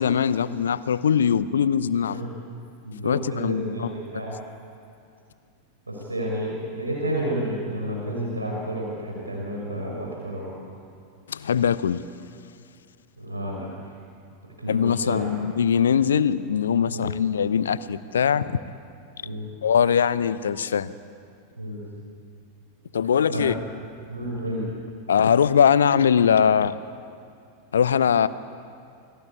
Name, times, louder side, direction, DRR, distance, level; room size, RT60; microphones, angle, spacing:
voice 1, 0.0-2.2 3.0-3.9 11.3-12.0 14.7-18.6 19.6-20.9 22.9-23.6 25.1-26.8 27.7-28.3, left 7 dB, 65° left, 16 dB, 0.8 m, -21 dB
voice 2, 2.8-4.3 5.9-10.5 13.2-13.9 14.6-15.4 16.9-17.1 19.2-19.4 21.6-21.8 23.3-23.6 24.1-24.7, right 1 dB, 80° right, -2 dB, 5.7 m, -30 dB
28.5 x 21.0 x 8.4 m, 2.5 s
figure-of-eight pair, 90°, 0 cm